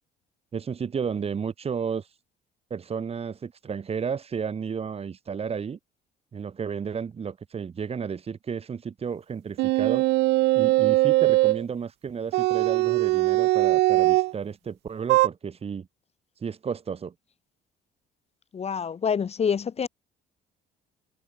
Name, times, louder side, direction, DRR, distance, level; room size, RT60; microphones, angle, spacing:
voice 1, 0.5-2.1 2.7-5.8 6.3-10.1 10.5-15.9 16.4-17.1, right 6 dB, 35° right, 5.0 m, -32 dB
sound 1, 9.6-11.6 12.3-14.3 15.1-15.3, right 20 dB, 90° right, 1.5 m, -21 dB
voice 2, 18.5-19.9, left 6 dB, 40° left, 5.3 m, -26 dB
cardioid pair, 110°, 17 cm